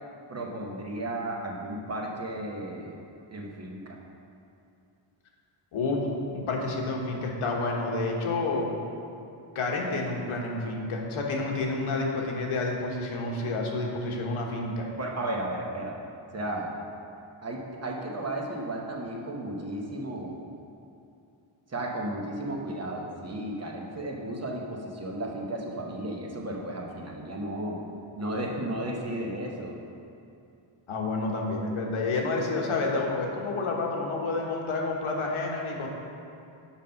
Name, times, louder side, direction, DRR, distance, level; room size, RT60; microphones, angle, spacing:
voice 1, 0.3-3.0 3.3-4.0 14.9-16.0 16.3-16.7 17.4-20.4 21.7-27.8 28.1-29.8, right 1 dB, 30° right, -1 dB, 0.9 m, -34 dB
voice 2, 5.7-8.7 9.5-14.9 30.9-35.9, left 3 dB, 75° left, 0 dB, 1.3 m, -29 dB
7.3 x 5.3 x 5.7 m, 2.6 s
wide cardioid pair, 150°, 50 cm